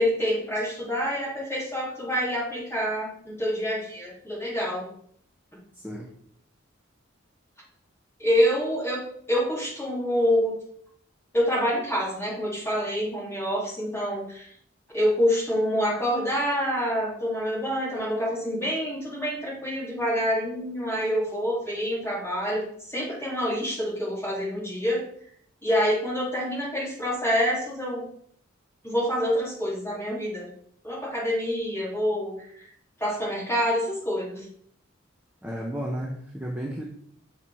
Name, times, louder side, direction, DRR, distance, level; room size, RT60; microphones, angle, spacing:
voice 1, 0.0-4.9 8.2-9.0 9.3-10.6 11.3-14.5 14.9-25.0 25.6-28.0 28.8-30.5 30.8-32.6 33.0-34.4, equal, 10° left, -7 dB, 3.1 m, -27 dB
voice 2, 35.4-36.8, equal, 10° right, -2 dB, 0.7 m, -32 dB
6.7 x 4.5 x 4.3 m, 0.62 s
head